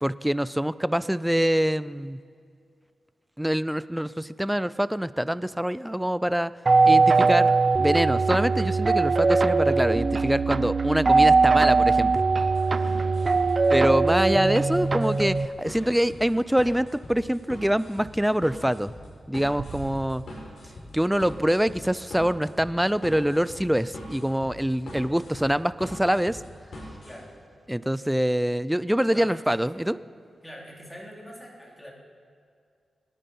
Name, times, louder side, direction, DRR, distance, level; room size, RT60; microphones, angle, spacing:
voice 1, 0.0-2.2 3.4-6.5 6.8-7.5 7.8-12.2 13.7-18.9 19.3-20.2 20.9-26.4 27.7-30.0, equal, 5° right, 17 dB, 0.5 m, -25 dB
sound 1, 6.7-15.5, right 4 dB, 45° right, 0.7 m, -21 dB
sound 2, 12.4-27.1, left 1 dB, 65° left, 5.1 m, -42 dB
voice 2, 12.9-13.4 14.2-14.4 15.7-15.9 27.0-27.3 29.1-29.6 30.4-31.9, equal, 10° left, -2 dB, 3.9 m, -44 dB
sound 3, 19.6-22.1, right 6 dB, 80° right, 0.8 m, -44 dB
26.0 x 9.9 x 5.5 m, 2.3 s
cardioid pair, 65°, 0 cm